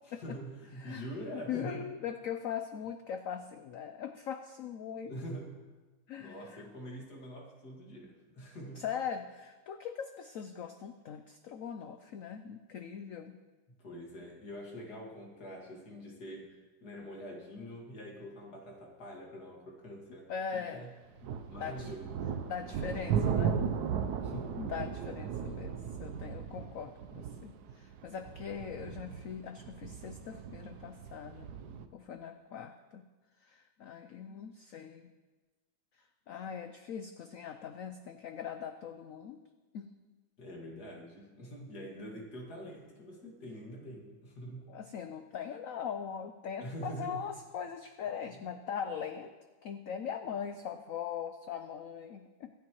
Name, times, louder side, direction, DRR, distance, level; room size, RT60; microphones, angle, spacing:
voice 1, 0.2-1.8 5.1-5.5 6.2-8.8 13.7-20.9 21.5-22.1 24.2-24.6 40.4-44.7 46.6-47.2, equal, 55° left, -1 dB, 2.6 m, -45 dB
voice 2, 1.3-5.1 6.1-6.6 8.7-13.4 20.3-20.9 21.5-21.9 22.4-23.6 24.6-31.5 31.9-33.0 33.4-35.1 36.0-39.4 39.7-39.9 44.7-49.3 49.6-52.5, left 7 dB, 85° left, 8 dB, 0.7 m, -41 dB
sound 1, 21.2-31.9, right 7 dB, 65° right, 1.1 m, -36 dB
24.5 x 8.6 x 3.1 m, 1.3 s
omnidirectional pair, 2.1 m